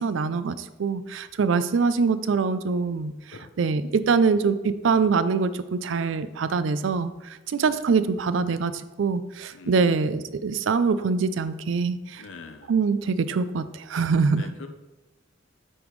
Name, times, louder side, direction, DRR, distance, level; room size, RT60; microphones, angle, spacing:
voice 1, 0.0-3.1 3.6-7.1 7.5-8.7 9.0-12.2 12.7-14.5, right 5 dB, 75° right, 13 dB, 0.4 m, -24 dB
voice 2, 9.5-10.0 12.2-12.7 14.4-14.7, left 4 dB, 75° left, 6 dB, 0.6 m, -43 dB
8.6 x 5.2 x 3.1 m, 1.1 s
head